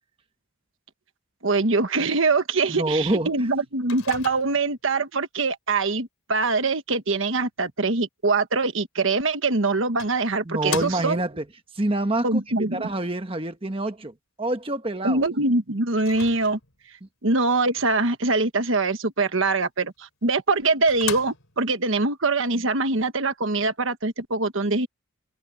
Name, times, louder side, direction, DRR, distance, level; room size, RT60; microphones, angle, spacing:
voice 1, 1.4-11.2 12.2-12.8 15.0-16.6 17.2-24.9, right 3 dB, 65° right, 1.3 m, -23 dB
voice 2, 2.7-3.5 10.4-11.4 11.7-12.4 12.7-15.2, right 1 dB, 25° right, 1.3 m, -27 dB
Microwave oven, 3.9-4.8 9.1-9.2 10.0-11.4 16.0-16.9 20.0-20.1 20.5-20.6 20.9-21.7, left 8 dB, 80° left, 3.1 m, -37 dB
head